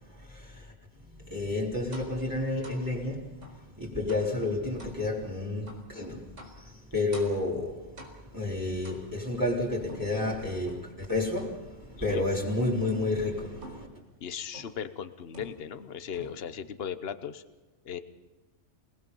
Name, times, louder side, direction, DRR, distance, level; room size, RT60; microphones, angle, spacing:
voice 1, 0.0-3.4 3.8-7.9 8.3-13.9, left 2 dB, 15° right, -4 dB, 4.0 m, -31 dB
sound 1, 1.9-2.2 2.6-2.9 3.4-3.6 4.1-4.4 4.8-5.0 5.7-5.9 6.4-6.6 7.1-7.5 8.0-8.4 8.8-9.4 9.9-11.0 11.4-11.8 12.1-12.4 12.8-13.1 13.6-14.0 14.5-14.9 15.3-15.8 16.1-16.6, equal, 85° right, 4.7 m, -48 dB
voice 2, 14.2-17.4 17.8-18.0, left 8 dB, 55° left, 11 dB, 1.2 m, -37 dB
28.0 x 19.0 x 5.5 m, 1.2 s
omnidirectional pair, 1.2 m